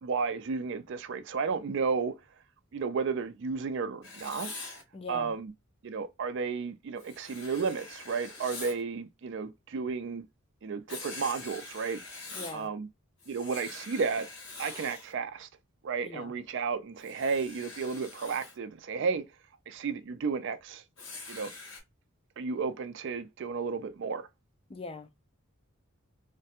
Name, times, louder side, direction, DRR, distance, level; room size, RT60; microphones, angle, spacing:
voice 1, 0.0-2.1 2.7-4.5 5.1-5.5 5.8-10.2 10.6-12.0 12.5-12.9 13.3-14.3 14.6-15.5 15.8-19.2 19.7-20.8 21.3-21.5 22.4-24.3, right 5 dB, 55° right, 0.4 m, -33 dB
Writing, 4.0-4.8 7.0-8.8 10.9-12.7 13.2-15.1 17.0-18.6 21.0-21.8, left 3 dB, 55° left, 1.5 m, -44 dB
voice 2, 4.9-5.3 12.4-12.7 16.0-16.3 24.7-25.1, left 3 dB, 25° left, 0.3 m, -41 dB
3.2 x 2.1 x 2.8 m
head